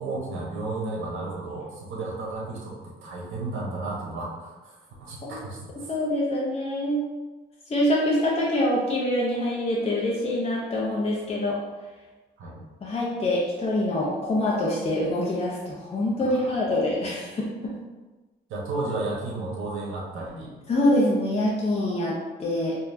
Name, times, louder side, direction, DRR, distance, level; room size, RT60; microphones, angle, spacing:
voice 1, 0.0-5.7 12.4-12.6 16.2-16.6 18.5-20.5, right 2 dB, 85° right, -4 dB, 1.3 m, -33 dB
voice 2, 5.8-7.1 7.7-11.6 12.8-17.7 20.7-22.8, left 1 dB, 30° left, -5 dB, 0.9 m, -25 dB
4.4 x 2.9 x 2.8 m, 1.2 s
cardioid pair, 90°, 20 cm